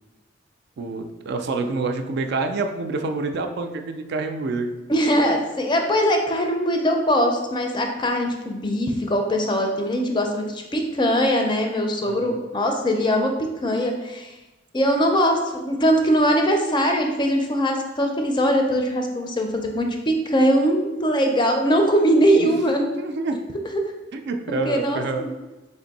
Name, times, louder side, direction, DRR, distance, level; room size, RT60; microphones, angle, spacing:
voice 1, 0.8-4.7 12.1-12.2 22.4-23.5 24.1-25.2, right 3 dB, 65° right, 6 dB, 0.4 m, -27 dB
voice 2, 4.9-14.3 14.7-22.9 23.7-23.8 24.6-25.3, equal, 25° left, 3 dB, 0.4 m, -21 dB
3.5 x 2.5 x 4.0 m, 1.1 s
head